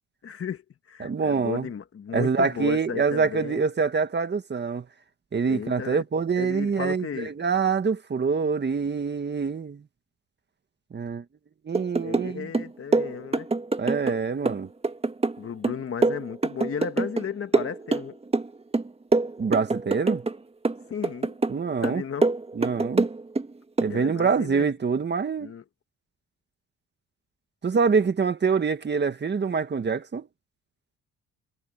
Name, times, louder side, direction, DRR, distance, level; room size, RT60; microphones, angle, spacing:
voice 1, 0.2-3.7 5.4-6.0 6.4-7.3 12.0-13.5 15.4-18.2 20.9-21.4 21.8-22.4 23.9-24.7 25.4-25.6, left 7 dB, 45° left, 2.2 m, -34 dB
voice 2, 1.0-1.7 2.1-4.9 5.3-9.8 10.9-11.2 11.6-12.5 13.8-14.7 19.4-20.2 21.5-22.0 22.5-23.1 23.8-25.5 27.6-30.3, right 5 dB, 35° right, 1.7 m, -25 dB
sound 1, 11.7-12.3 12.5-14.2 14.5-17.3 17.5-18.5 18.7-20.4 20.6-21.6 21.8-23.5 23.8-24.0, right 3 dB, 20° right, 1.6 m, -25 dB
cardioid pair, 90°, 30 cm